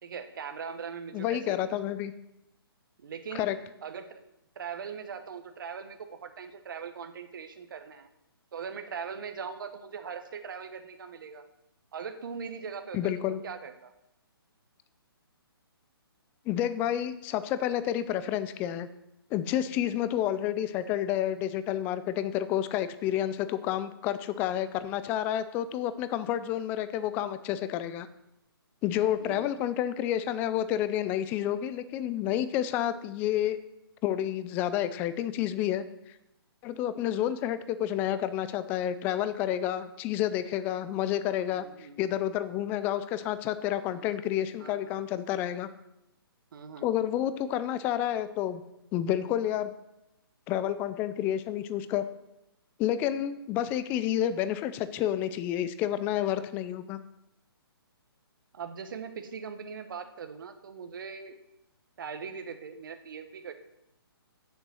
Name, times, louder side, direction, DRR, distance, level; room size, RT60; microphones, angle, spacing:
voice 1, 0.0-1.6 3.0-3.5 3.8-4.2 4.6-8.1 8.5-11.4 11.9-13.9 29.2-29.6 41.5-42.0 43.9-44.1 44.6-45.0 46.5-46.9 58.5-61.3 62.0-63.5, right 6 dB, 55° right, 8 dB, 1.1 m, -40 dB
voice 2, 1.1-2.1 3.3-3.6 12.9-13.4 16.5-18.9 19.3-28.1 28.8-33.6 34.0-35.8 36.6-45.7 46.8-48.6 48.9-49.7 50.5-52.1 52.8-57.0, left 11 dB, 15° left, 13 dB, 0.3 m, -29 dB
8.1 x 6.9 x 6.2 m, 0.87 s
hypercardioid pair, 145°, 13 cm